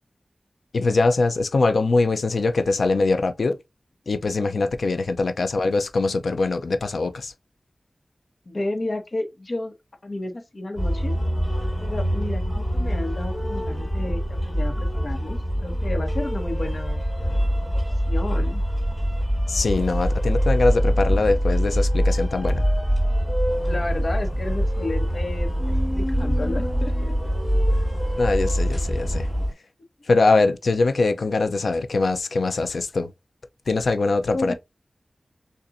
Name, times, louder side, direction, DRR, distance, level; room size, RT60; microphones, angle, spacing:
voice 1, 0.7-3.6 4.1-7.3 19.5-22.6 28.2-29.3 30.1-33.1 33.7-34.5, left 3 dB, 85° left, 0.5 m, -22 dB
voice 2, 8.5-9.7 10.0-11.1 11.8-17.1 17.7-18.6 23.7-25.5 25.9-27.1 34.3-34.5, left 2 dB, 50° left, 1.2 m, -32 dB
sound 1, 10.8-29.5, equal, 15° left, 1.7 m, -24 dB
sound 2, 23.5-29.5, equal, ahead, 1.6 m, -45 dB
6.8 x 2.6 x 2.5 m
wide cardioid pair, 85°, 0 cm